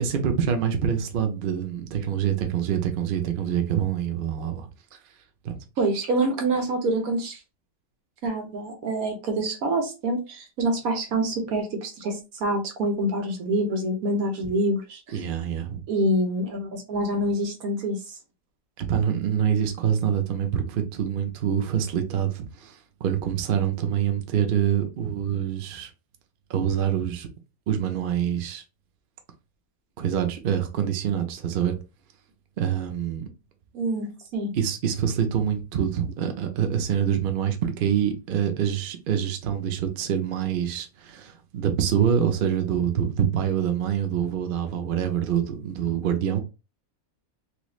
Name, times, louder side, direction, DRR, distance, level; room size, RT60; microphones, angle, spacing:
voice 1, 0.0-5.1 5.4-5.6 15.1-15.8 18.8-25.9 26.5-27.3 27.7-28.6 30.0-31.7 32.6-33.3 34.5-46.4, right 8 dB, 60° right, 0.6 m, -26 dB
voice 2, 5.8-7.4 8.2-15.0 15.9-18.0 33.7-34.5, right 1 dB, 75° right, 1.4 m, -26 dB
3.1 x 3.0 x 2.4 m
omnidirectional pair, 1.6 m